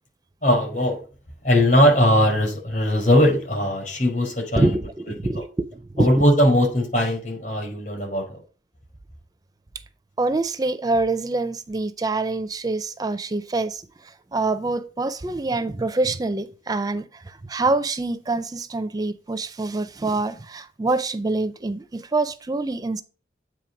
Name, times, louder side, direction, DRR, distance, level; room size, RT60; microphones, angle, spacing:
voice 1, 0.4-1.0 1.4-4.7 5.3-5.4 6.0-8.4, equal, 50° left, 4.8 m, -19 dB
voice 2, 4.6-6.1 10.2-13.8 14.3-23.0, right 2 dB, 20° right, 0.4 m, -25 dB
9.0 x 3.3 x 5.7 m
head